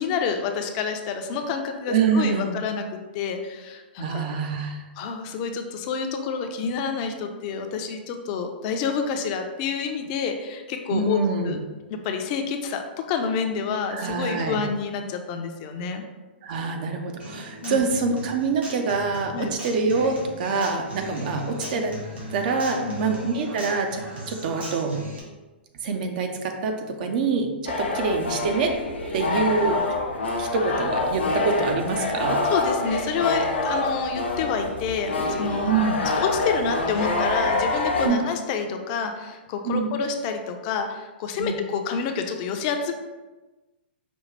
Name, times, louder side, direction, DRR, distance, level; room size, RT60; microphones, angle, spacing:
voice 1, 0.0-4.3 5.0-11.2 11.4-11.6 11.9-16.0 17.6-17.8 19.3-19.5 22.8-23.0 32.5-35.7 36.2-42.9, left 6 dB, 40° left, 5 dB, 0.5 m, -28 dB
voice 2, 1.9-2.5 4.0-4.8 10.9-11.6 13.9-14.6 16.4-21.9 22.3-24.0 24.3-25.0 25.8-28.7 29.1-29.8 30.4-32.4 35.7-36.0 38.0-38.2 39.6-39.9 41.4-41.5, right 4 dB, 50° right, 4 dB, 0.6 m, -25 dB
Human voice / Acoustic guitar, 17.2-25.2, equal, 75° right, 1.5 m, -38 dB
sound 1, 27.7-38.1, left 2 dB, 85° left, 0.8 m, -26 dB
5.2 x 2.3 x 3.2 m, 1.2 s
hypercardioid pair, 120°, 6 cm